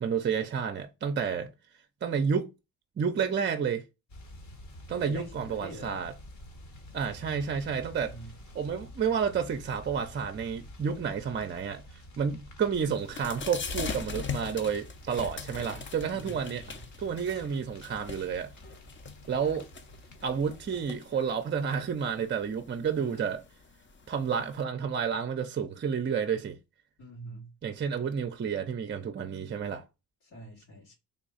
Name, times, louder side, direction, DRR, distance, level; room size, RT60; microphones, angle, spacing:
voice 1, 0.0-1.5 2.0-2.5 3.0-3.8 4.9-6.1 6.9-8.1 8.6-16.6 17.0-18.5 19.3-19.7 20.2-23.4 24.1-26.6 27.6-29.8, right 6 dB, 30° right, 0.5 m, -30 dB
sound 1, 4.1-20.8, equal, 50° left, 1.1 m, -49 dB
voice 2, 4.9-6.1 8.0-8.3 16.1-16.8 22.9-23.3 27.0-27.5 30.2-30.9, right 1 dB, 90° left, 2.2 m, -45 dB
sound 2, 12.7-24.6, left 5 dB, 30° left, 0.6 m, -42 dB
3.5 x 2.3 x 3.9 m
cardioid pair, 80°, 37 cm